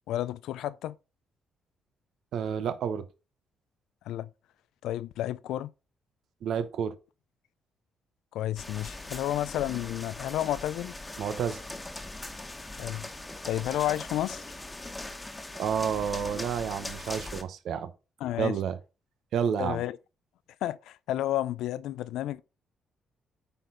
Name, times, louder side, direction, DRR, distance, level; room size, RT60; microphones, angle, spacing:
voice 1, 0.1-1.0 4.1-4.3 4.8-5.7 8.3-10.9 12.7-13.1 13.4-14.5 18.2-18.6 19.6-20.0 20.6-22.4, left 13 dB, 85° left, 0.5 m, -31 dB
voice 2, 2.3-3.0 6.4-6.9 11.2-11.6 15.6-17.9 18.4-18.8 19.3-19.8, right 7 dB, 75° right, 1.1 m, -30 dB
sound 1, 8.6-17.4, left 2 dB, 15° left, 1.4 m, -40 dB
9.1 x 4.4 x 4.0 m
cardioid pair, 90°, 0 cm